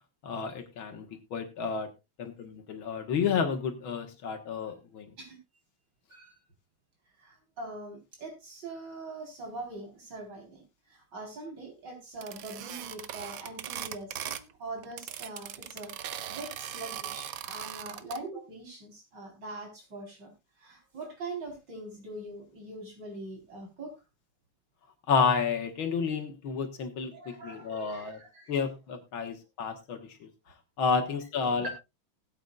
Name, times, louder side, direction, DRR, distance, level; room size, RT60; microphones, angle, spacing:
voice 1, 0.2-1.9 2.2-5.1 25.1-28.2 28.5-30.3 30.8-31.7, left 5 dB, 70° left, 5 dB, 2.1 m, -30 dB
voice 2, 7.2-20.3 20.6-23.9 27.1-28.5 31.4-31.7, right 2 dB, 50° right, 1 dB, 4.7 m, -43 dB
sound 1, 12.2-14.5 14.8-18.2, right 10 dB, 75° right, 0.8 m, -39 dB
19.5 x 8.2 x 2.4 m, 0.24 s
omnidirectional pair, 2.4 m